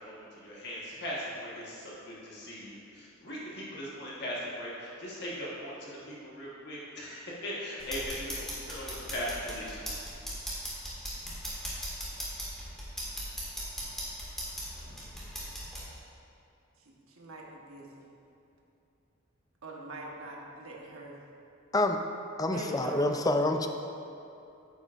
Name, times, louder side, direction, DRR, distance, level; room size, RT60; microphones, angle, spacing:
voice 1, 0.0-9.8, equal, 55° left, -6 dB, 1.3 m, -39 dB
sound 1, 7.8-15.8, equal, ahead, 1.8 m, -39 dB
voice 2, 17.2-17.9 19.6-21.2 22.5-23.0, right 2 dB, 75° right, -2 dB, 1.2 m, -42 dB
voice 3, 22.4-23.7, left 2 dB, 15° left, 6 dB, 0.4 m, -27 dB
9.3 x 8.3 x 2.5 m, 2.7 s
head